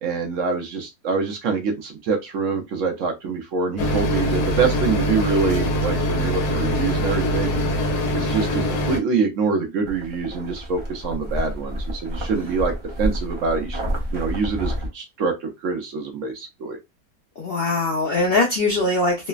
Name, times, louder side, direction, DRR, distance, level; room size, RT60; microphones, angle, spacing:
voice 1, 0.0-7.5 8.1-16.8, right 5 dB, 65° right, 0.8 m, -25 dB
sound 1, 3.8-9.0, equal, 80° left, 1.3 m, -23 dB
sound 2, 9.8-14.9, equal, 30° right, 0.5 m, -29 dB
voice 2, 17.4-19.3, left 2 dB, 65° left, 0.6 m, -21 dB
3.2 x 2.0 x 2.3 m
omnidirectional pair, 1.6 m